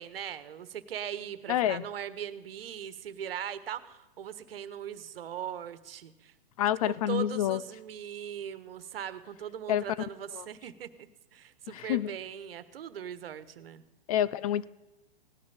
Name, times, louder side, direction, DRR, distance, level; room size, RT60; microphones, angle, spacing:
voice 1, 0.0-6.3 6.8-10.9 11.3-13.8, right 9 dB, 70° right, 13 dB, 1.4 m, -40 dB
voice 2, 1.5-1.8 6.6-7.6 9.7-9.8 10.4-10.5 11.7-12.1 14.1-14.6, left 11 dB, 40° left, 19 dB, 0.4 m, -27 dB
17.5 x 9.8 x 7.1 m, 1.0 s
hypercardioid pair, 130°, 30 cm